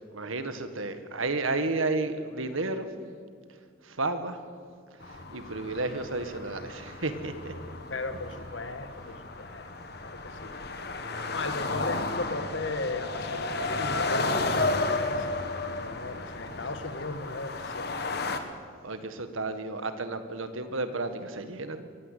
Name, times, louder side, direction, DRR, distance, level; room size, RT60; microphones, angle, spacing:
voice 1, 0.1-2.9 3.8-4.4 5.1-7.5 18.8-21.9, right 2 dB, 80° right, 9 dB, 1.8 m, -32 dB
sound 1, 5.0-18.4, left 3 dB, 50° left, 1.7 m, -33 dB
voice 2, 7.9-9.6 10.2-10.5 11.3-18.2, left 2 dB, 65° left, 9 dB, 1.7 m, -37 dB
22.5 x 15.5 x 8.5 m, 2.2 s
head